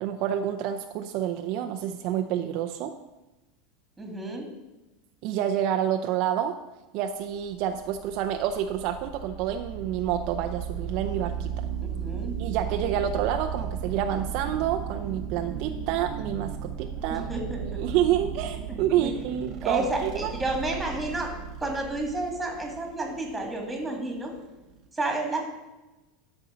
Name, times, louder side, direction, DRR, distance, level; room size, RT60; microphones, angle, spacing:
voice 1, 0.0-2.9 5.2-6.6 6.9-11.7 12.4-17.3 17.6-20.3, right 10 dB, 50° right, 6 dB, 0.6 m, -28 dB
voice 2, 4.0-4.5 11.8-12.4 17.1-17.8 18.7-19.1 19.6-21.3 21.6-24.3 24.9-25.4, right 2 dB, 10° right, 1 dB, 2.4 m, -31 dB
sound 1, 7.5-24.9, right 8 dB, 35° right, 1.0 m, -36 dB
13.0 x 5.3 x 5.1 m, 1.1 s
supercardioid pair, 145°, 0 cm